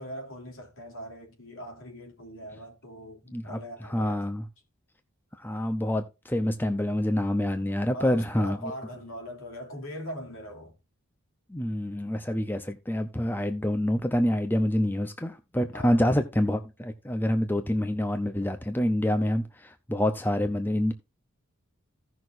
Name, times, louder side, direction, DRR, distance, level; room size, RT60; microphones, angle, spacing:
voice 1, 0.0-4.2 7.9-10.7 15.7-16.0, equal, 65° left, 2.9 m, -41 dB
voice 2, 3.9-4.4 5.4-8.7 11.5-20.9, left 1 dB, 10° left, 0.6 m, -27 dB
16.0 x 6.2 x 2.6 m
head